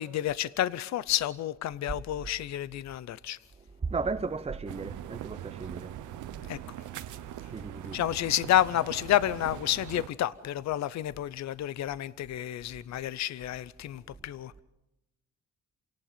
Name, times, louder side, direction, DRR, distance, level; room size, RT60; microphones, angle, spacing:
voice 1, 0.0-3.4 6.4-6.6 7.9-14.5, left 12 dB, 65° left, 0.7 m, -30 dB
voice 2, 3.8-6.5 7.5-8.0, right 4 dB, 20° right, 0.9 m, -35 dB
sound 1, 4.7-10.1, right 12 dB, 85° right, 0.9 m, -42 dB
27.5 x 18.0 x 5.8 m
cardioid pair, 90°, 30 cm